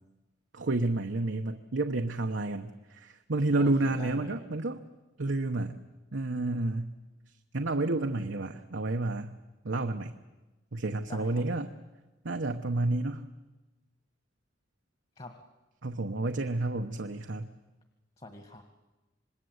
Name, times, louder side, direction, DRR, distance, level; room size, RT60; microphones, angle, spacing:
voice 1, 0.5-4.8 5.2-5.8 6.1-6.9 7.5-9.3 9.6-10.1 10.7-11.7 12.2-13.2 15.8-17.5, right 2 dB, 90° right, 4 dB, 1.1 m, -30 dB
voice 2, 3.6-4.3 11.0-11.6 15.2-15.4 18.2-18.6, left 2 dB, 35° left, 6 dB, 1.7 m, -46 dB
27.0 x 20.5 x 8.1 m, 1.1 s
head